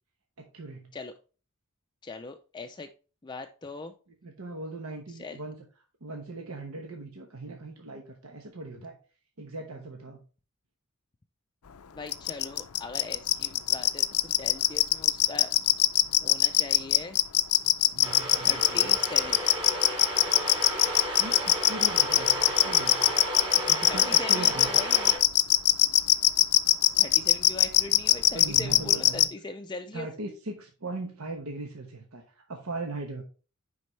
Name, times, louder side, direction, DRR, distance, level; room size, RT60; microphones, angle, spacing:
voice 1, 0.4-0.9 4.2-5.6 6.0-9.0 9.4-10.2 17.9-19.0 21.2-23.0 23.5-24.8 28.3-29.3 29.9-33.2, right 2 dB, 80° right, 2 dB, 1.0 m, -39 dB
voice 2, 2.0-2.9 3.2-3.9 5.1-5.4 11.9-15.5 16.2-17.2 18.4-19.4 23.8-25.2 27.0-30.1, left 3 dB, 20° left, 6 dB, 0.4 m, -40 dB
sound 1, 12.1-29.3, left 14 dB, 90° left, 0.5 m, -20 dB
sound 2, 18.0-25.2, right 1 dB, 20° right, 2.8 m, -33 dB
9.7 x 4.2 x 3.2 m, 0.36 s
head